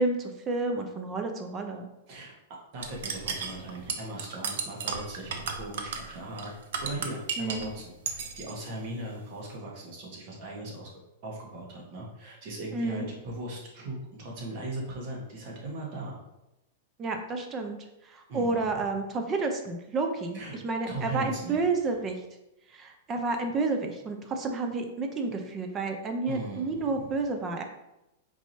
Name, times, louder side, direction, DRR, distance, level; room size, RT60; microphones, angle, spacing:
voice 1, 0.0-1.9 7.4-7.6 12.7-13.1 17.0-17.8 18.0-22.2 22.7-27.6, right 3 dB, 25° right, 5 dB, 0.6 m, -30 dB
voice 2, 2.7-6.5 6.8-10.9 11.2-16.2 18.3-18.7 20.3-20.6 20.9-21.6 26.3-27.0, right 1 dB, 50° right, -2 dB, 1.4 m, -38 dB
sound 1, 2.8-7.7 8.1-8.5, right 6 dB, 70° right, 0.5 m, -34 dB
4.6 x 2.9 x 2.8 m, 0.91 s
hypercardioid pair, 120°, 0 cm